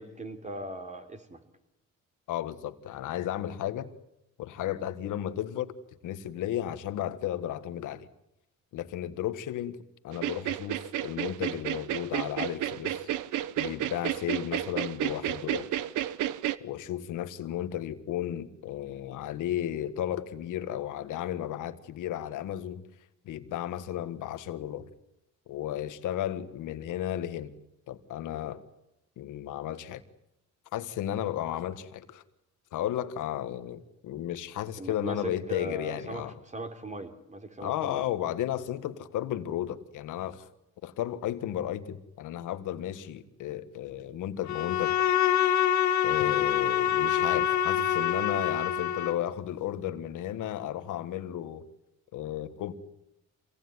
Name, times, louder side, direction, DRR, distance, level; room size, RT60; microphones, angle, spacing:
voice 1, 0.0-1.4 34.8-38.0, right 1 dB, 25° right, 6 dB, 3.4 m, -39 dB
voice 2, 2.3-3.9 4.4-5.7 6.0-8.1 8.7-9.8 10.0-13.1 13.6-15.7 16.6-22.9 23.2-24.9 25.5-27.5 27.9-28.6 29.2-30.0 30.7-32.2 32.7-36.3 37.6-40.5 40.8-45.0 46.0-51.7 52.1-52.7, left 11 dB, 85° left, 11 dB, 1.7 m, -34 dB
sound 1, 10.1-16.6, right 13 dB, 85° right, 1.0 m, -31 dB
Bowed string instrument, 44.5-49.3, left 10 dB, 70° left, 2.1 m, -26 dB
26.0 x 18.0 x 9.6 m, 0.88 s
cardioid pair, 90°, 30 cm